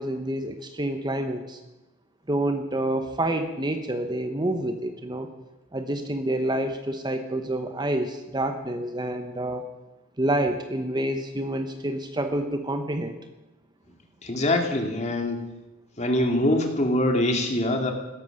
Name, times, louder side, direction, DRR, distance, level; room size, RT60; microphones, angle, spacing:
voice 1, 0.0-1.6 2.3-5.3 5.7-9.6 10.2-13.2, right 1 dB, 20° right, 7 dB, 1.0 m, -28 dB
voice 2, 14.2-15.4 16.0-17.9, left 1 dB, 35° left, 3 dB, 2.3 m, -24 dB
16.5 x 13.0 x 6.5 m, 1.1 s
head